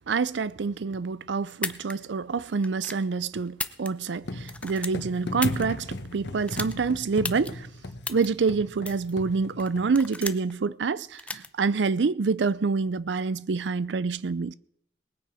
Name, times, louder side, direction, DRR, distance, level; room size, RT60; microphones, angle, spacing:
voice 1, 0.1-7.7 8.1-14.5, right 4 dB, 90° right, 0.5 m, -27 dB
sound 1, 1.5-1.9 2.6-3.0 3.5-4.2 4.5-5.6 6.5-6.7 7.2-7.5 8.0-8.3 8.9-9.1 9.6-10.5 11.2-11.5, left 2 dB, 5° left, 0.6 m, -34 dB
sound 2, 4.2-10.0, left 2 dB, 75° left, 1.2 m, -37 dB
19.5 x 9.1 x 4.9 m
head